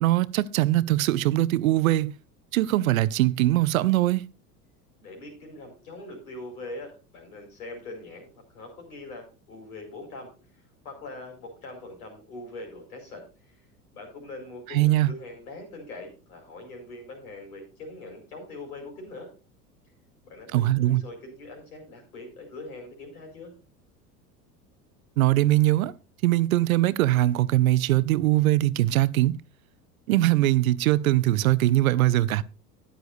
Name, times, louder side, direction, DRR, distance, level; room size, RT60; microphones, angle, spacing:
voice 1, 0.0-2.1 2.5-4.2 14.7-15.1 20.5-21.0 25.2-25.9 26.2-29.4 30.1-32.4, right 15 dB, 60° right, 0.7 m, -21 dB
voice 2, 5.0-13.6 13.9-19.3 20.2-23.5, left 2 dB, 65° left, 5.5 m, -42 dB
13.5 x 10.0 x 2.6 m
figure-of-eight pair, 75°, 47 cm